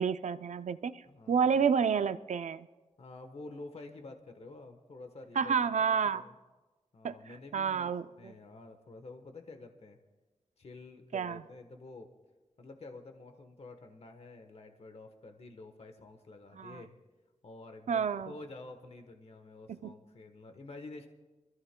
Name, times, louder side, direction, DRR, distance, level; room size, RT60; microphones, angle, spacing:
voice 1, 0.0-1.0 1.3-2.7 5.4-6.2 7.0-7.2 7.5-8.3 11.1-11.4 16.6-16.8 17.9-18.3 19.7-19.9, right 6 dB, 85° right, 12 dB, 0.4 m, -29 dB
voice 2, 1.0-1.5 3.0-5.8 6.1-6.3 6.9-10.0 10.6-12.1 12.6-16.9 17.4-21.1, left 2 dB, 60° left, 6 dB, 1.1 m, -49 dB
26.0 x 14.0 x 2.2 m, 1.2 s
wide cardioid pair, 120°, 12 cm